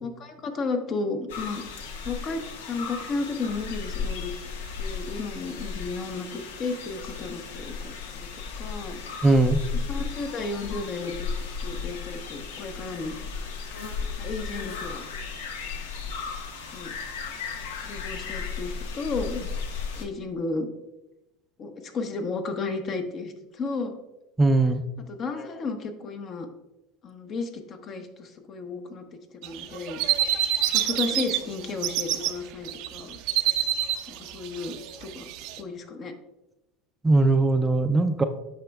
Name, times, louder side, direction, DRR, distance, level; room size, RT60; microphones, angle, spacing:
voice 1, 0.0-1.6 2.0-2.4 2.7-4.4 4.8-8.3 8.6-9.0 9.9-11.3 11.6-13.2 14.2-15.0 16.7-16.9 17.8-19.5 19.9-20.7 21.6-24.0 25.1-26.5 27.0-29.0 29.4-30.0 30.3-33.2 34.1-35.3 35.6-36.1, left 3 dB, 40° left, 6 dB, 0.9 m, -33 dB
sound 1, 1.3-20.1, left 5 dB, 85° left, 0.8 m, -35 dB
voice 2, 9.2-9.6 24.4-24.8 37.0-38.2, right 2 dB, 15° right, 7 dB, 0.4 m, -20 dB
sound 2, 29.4-31.4 31.7-32.3 32.6-35.6, right 12 dB, 65° right, 0.5 m, -26 dB
8.6 x 5.2 x 2.3 m, 0.94 s
supercardioid pair, 100°, 0 cm